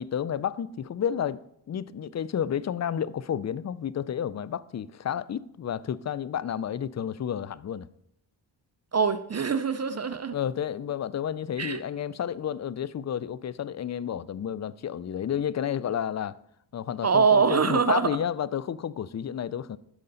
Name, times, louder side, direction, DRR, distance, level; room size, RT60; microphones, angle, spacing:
voice 1, 0.0-7.9 10.3-16.4 16.7-19.8, left 9 dB, 35° left, 0.4 m, -31 dB
voice 2, 8.9-10.3 11.6-11.8 17.0-18.1, right 5 dB, 35° right, 0.6 m, -23 dB
12.0 x 5.3 x 4.0 m
cardioid pair, 60°, 47 cm